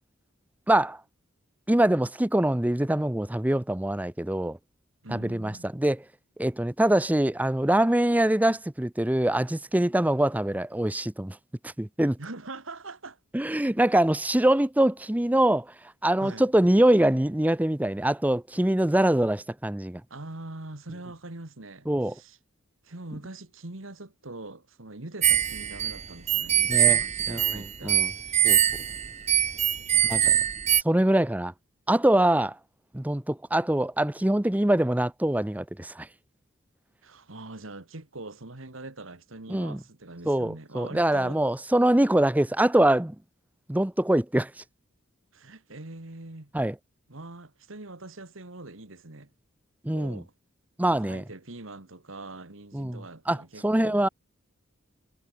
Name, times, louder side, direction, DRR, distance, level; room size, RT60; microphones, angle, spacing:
voice 1, 0.7-1.0 1.7-4.6 5.1-6.0 6.4-11.4 11.6-12.2 13.3-15.7 16.0-20.0 21.9-22.1 26.7-27.0 27.3-28.1 28.4-28.6 30.1-30.3 30.8-31.5 31.9-32.6 32.9-36.1 39.5-39.8 40.3-43.2 43.7-44.5 46.5-46.7 49.8-50.2 50.8-51.2 52.7-53.4 53.6-54.1, right 1 dB, 5° right, 0.6 m, -24 dB
voice 2, 5.0-5.7 12.2-13.2 16.2-16.5 20.1-22.4 22.8-28.6 29.9-30.5 37.0-41.4 45.3-46.5 47.1-49.3 49.9-50.3 50.9-54.1, right 2 dB, 70° right, 2.0 m, -43 dB
sound 1, 25.2-30.8, right 10 dB, 35° right, 0.9 m, -23 dB
head